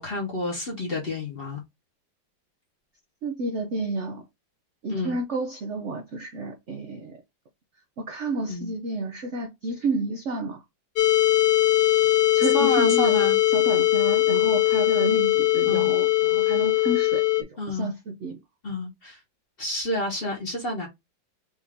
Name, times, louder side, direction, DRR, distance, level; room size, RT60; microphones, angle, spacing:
voice 1, 0.0-1.6 4.9-5.2 8.4-8.7 12.5-13.4 15.7-15.9 17.6-17.9 18.6-19.2 19.6-20.9, left 2 dB, 35° left, 1.1 m, -29 dB
voice 2, 3.2-4.2 4.8-7.2 8.0-10.6 12.3-13.2 13.5-18.4, right 2 dB, 70° right, 0.6 m, -30 dB
sound 1, 11.0-17.4, left 16 dB, 70° left, 1.3 m, -21 dB
4.9 x 2.7 x 3.5 m
omnidirectional pair, 2.1 m